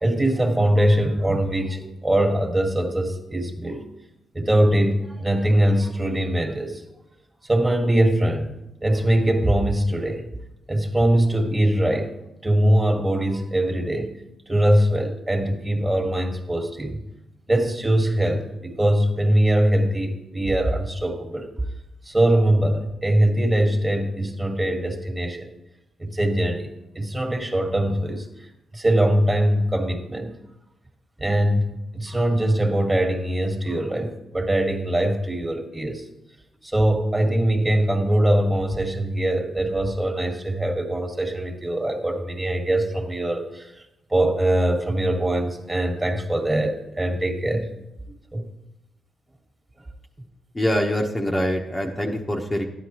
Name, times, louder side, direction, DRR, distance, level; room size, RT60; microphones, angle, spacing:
voice 1, 0.0-3.9 4.3-6.8 7.5-8.5 8.8-10.3 10.7-12.1 12.4-14.2 14.5-17.0 17.5-21.5 22.1-25.5 26.0-28.3 28.7-30.3 31.2-36.1 36.6-43.7 44.1-47.7 48.3-48.4, right 1 dB, 20° right, 4 dB, 1.6 m, -22 dB
voice 2, 50.5-52.7, equal, 20° left, 0 dB, 1.1 m, -24 dB
12.0 x 9.8 x 3.0 m, 0.89 s
cardioid pair, 65°, 0 cm